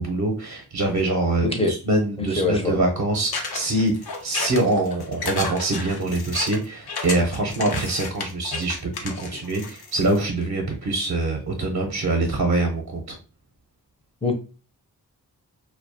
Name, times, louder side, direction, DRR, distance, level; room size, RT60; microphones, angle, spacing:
voice 1, 0.0-3.9 4.2-13.2, right 2 dB, 50° right, 2 dB, 0.6 m, -24 dB
voice 2, 1.4-1.7 2.2-2.8 14.2-14.3, left 3 dB, 15° left, 4 dB, 0.5 m, -23 dB
sound 1, 3.3-10.2, left 4 dB, 75° left, 0.6 m, -32 dB
2.2 x 2.1 x 2.6 m, 0.35 s
cardioid pair, 60°, 38 cm